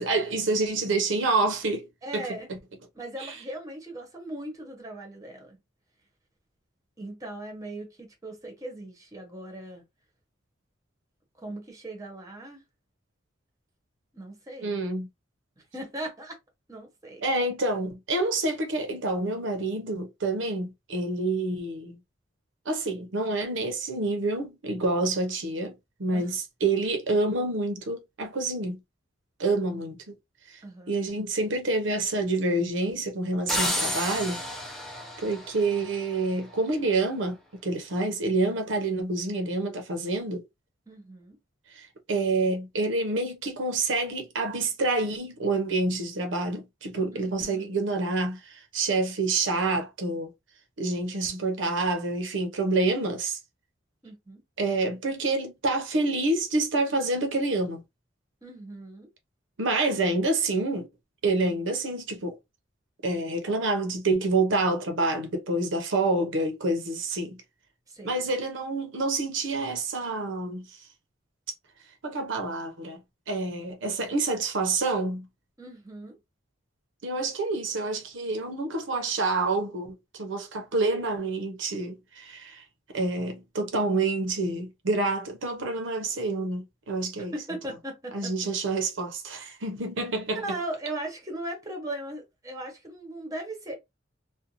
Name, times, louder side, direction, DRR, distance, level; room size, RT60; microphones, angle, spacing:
voice 1, 0.0-1.9 2.1-2.3 3.2-3.4 14.6-15.1 17.2-22.0 22.7-28.8 29.4-30.1 30.5-30.6 30.9-34.4 35.2-37.4 37.6-40.4 41.7-50.3 50.8-53.4 54.6-57.8 59.6-60.9 61.2-62.4 63.0-67.4 68.0-70.8 72.0-73.0 73.3-75.3 77.0-82.6 82.9-87.3 88.1-90.4, right 2 dB, 70° right, 0.6 m, -27 dB
voice 2, 2.0-2.5 2.9-5.6 7.0-9.8 11.4-12.6 14.1-14.8 15.6-16.4 16.7-17.2 26.1-26.4 30.6-31.1 40.9-41.4 47.1-47.6 54.0-54.4 58.4-59.1 67.9-68.2 75.6-76.2 87.2-88.3 90.4-93.7, right 1 dB, 20° right, 0.9 m, -38 dB
sound 1, 33.5-36.3, left 1 dB, ahead, 0.5 m, -31 dB
2.5 x 2.2 x 2.7 m
head